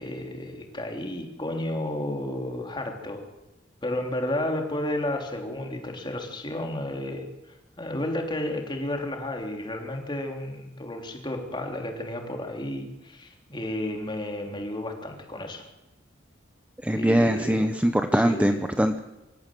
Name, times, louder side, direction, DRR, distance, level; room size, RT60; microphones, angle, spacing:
voice 1, 0.0-3.2 3.8-15.7 16.9-17.7 18.1-18.6, left 1 dB, 25° left, 2 dB, 3.3 m, -32 dB
voice 2, 16.8-19.0, right 1 dB, 5° right, 7 dB, 0.8 m, -22 dB
25.5 x 14.5 x 7.7 m, 1.0 s
head